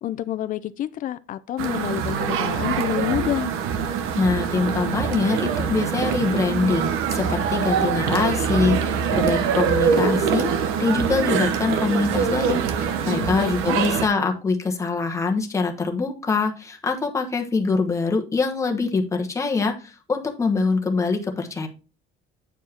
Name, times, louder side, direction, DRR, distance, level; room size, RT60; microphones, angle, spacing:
voice 1, 0.0-3.6 13.0-13.8, left 12 dB, 40° left, 0.5 m, -28 dB
sound 1, 1.6-14.1, right 7 dB, 90° right, 1.0 m, -24 dB
voice 2, 4.2-10.5 10.8-21.7, left 4 dB, 15° left, 1.2 m, -24 dB
9.2 x 4.6 x 4.2 m
cardioid pair, 175°, 21 cm